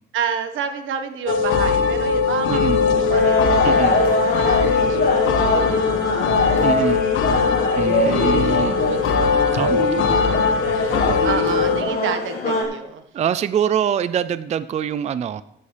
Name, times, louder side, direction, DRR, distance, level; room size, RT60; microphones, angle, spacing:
voice 1, 0.1-3.8 4.2-6.9 7.2-7.6 8.3-10.2 11.2-13.0, right 6 dB, 85° right, 8 dB, 1.4 m, -30 dB
sound 1, 1.3-11.8, left 5 dB, 85° left, 1.3 m, -20 dB
voice 2, 2.5-2.8 3.6-4.0 6.6-7.0 7.8-8.8 9.5-10.5 10.9-11.2 13.1-15.4, right 8 dB, 35° right, 14 dB, 0.4 m, -24 dB
sound 2, 3.1-12.6, left 2 dB, 55° left, 5.5 m, -23 dB
16.0 x 11.0 x 3.3 m, 0.77 s
cardioid pair, 145°, 20 cm